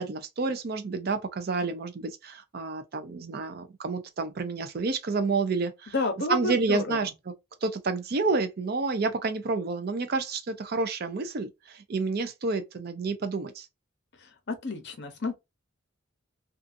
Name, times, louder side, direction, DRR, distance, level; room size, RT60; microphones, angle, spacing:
voice 1, 0.0-5.9 6.3-7.3 7.6-13.7, right 3 dB, 50° right, 0.4 m, -29 dB
voice 2, 5.9-7.0 14.2-15.4, left 2 dB, 55° left, 0.7 m, -30 dB
2.5 x 2.4 x 2.5 m
head